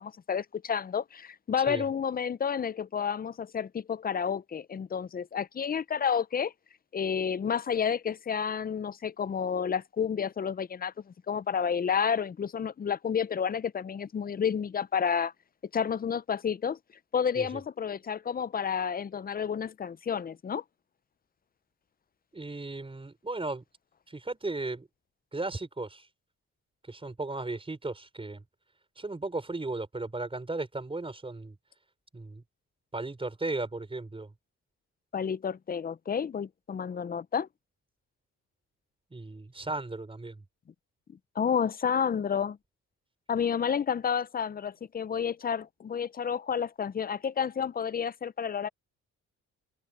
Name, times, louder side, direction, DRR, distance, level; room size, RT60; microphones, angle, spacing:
voice 1, 0.0-6.5 6.9-15.3 15.7-16.8 17.1-20.6 35.1-37.5 41.1-42.6 43.3-48.7, left 7 dB, 30° left, 0.6 m, -30 dB
voice 2, 22.3-23.6 24.1-24.9 25.3-26.1 26.8-28.4 28.9-31.5 32.1-32.4 32.9-34.3 39.1-40.4, right 2 dB, 20° right, 5.0 m, -36 dB
cardioid pair, 90°, 30 cm